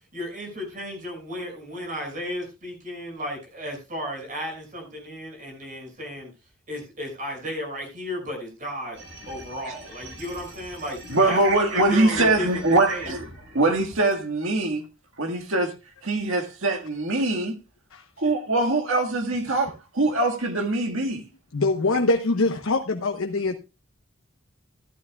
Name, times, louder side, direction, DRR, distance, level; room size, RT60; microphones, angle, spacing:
voice 1, 0.1-6.3 6.7-9.0 9.3-11.0 11.3-12.5 12.9-13.1, equal, 35° right, 6.0 m, -34 dB
sound 1, 8.9-14.1, right 1 dB, 55° right, 6.1 m, -44 dB
voice 2, 11.1-13.2 13.5-14.8 15.2-15.7 16.0-17.6 18.2-21.2, right 2 dB, 70° right, 1.8 m, -23 dB
voice 3, 21.5-23.6, left 2 dB, 75° left, 1.0 m, -23 dB
14.5 x 12.0 x 2.3 m
head